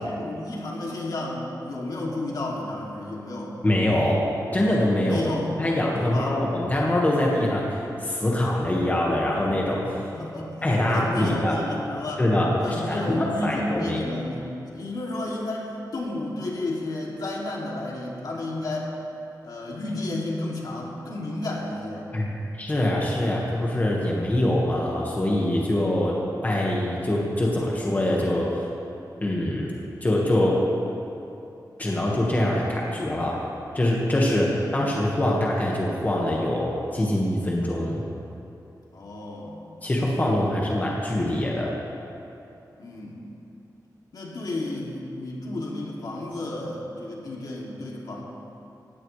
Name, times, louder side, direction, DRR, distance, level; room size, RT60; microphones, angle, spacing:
voice 1, 0.0-3.5 5.0-5.6 6.0-6.4 10.1-12.2 12.6-18.9 19.4-22.1 23.2-23.6 38.9-39.6 42.8-43.2 44.1-48.2, left 2 dB, 65° left, -3 dB, 2.8 m, -32 dB
voice 2, 3.6-4.2 4.5-5.2 5.6-10.0 10.6-11.6 12.2-14.0 22.1-22.3 22.6-26.2 26.4-28.5 29.2-29.7 30.0-30.6 31.8-33.4 33.7-38.0 39.8-41.7, left 1 dB, 25° left, -3 dB, 1.7 m, -24 dB
17.5 x 17.0 x 3.4 m, 2.8 s
wide cardioid pair, 155°, 7 cm